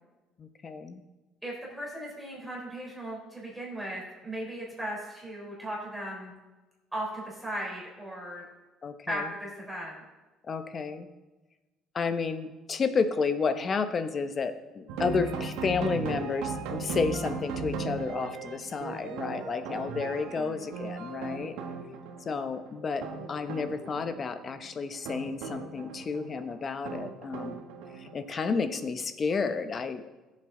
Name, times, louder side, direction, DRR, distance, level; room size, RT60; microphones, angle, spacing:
voice 1, 0.4-1.0 8.8-9.3 10.4-11.1 11.9-21.6 22.2-27.6 27.9-30.1, left 5 dB, 30° left, 10 dB, 0.8 m, -31 dB
voice 2, 1.4-6.3 6.9-8.5 9.1-10.0 20.4-20.7, right 1 dB, 5° right, -4 dB, 3.6 m, -37 dB
sound 1, 14.9-28.4, right 5 dB, 85° right, 1.3 m, -37 dB
16.0 x 7.5 x 3.8 m, 1.1 s
cardioid pair, 135°, 0 cm